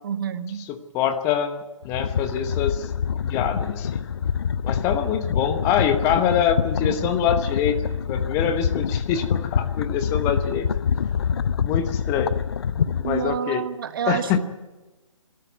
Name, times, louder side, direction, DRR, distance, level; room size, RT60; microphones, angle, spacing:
voice 1, 0.0-0.7 6.8-7.1 13.0-14.4, right 8 dB, 40° right, 10 dB, 1.4 m, -29 dB
voice 2, 0.6-2.9 3.2-4.0 4.6-10.7 11.6-12.3 13.0-13.6 14.1-14.4, left 8 dB, 20° left, 9 dB, 1.0 m, -25 dB
sound 1, 1.8-13.4, left 7 dB, 50° left, 0.6 m, -26 dB
24.0 x 13.5 x 9.4 m, 1.1 s
figure-of-eight pair, 135°, 17 cm